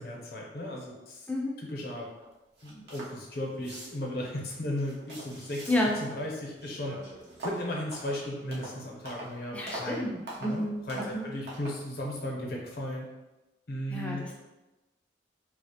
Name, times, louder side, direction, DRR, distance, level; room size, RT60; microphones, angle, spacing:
voice 1, 0.0-1.3 1.6-2.1 2.6-5.6 6.0-7.0 7.4-10.1 10.4-13.0 13.7-14.2, left 1 dB, 60° left, -2 dB, 0.6 m, -36 dB
voice 2, 1.3-1.6 5.7-6.0 9.5-11.3 13.9-14.4, left 1 dB, 5° left, -2 dB, 0.3 m, -31 dB
sound 1, 2.2-2.3 2.6-3.2 3.5-4.2 4.7-6.2 6.5-9.4 9.7-10.0 10.3-10.6 10.9-11.2 11.5-11.8, right 1 dB, 70° right, 0.7 m, -43 dB
2.4 x 2.0 x 2.7 m, 1.0 s
head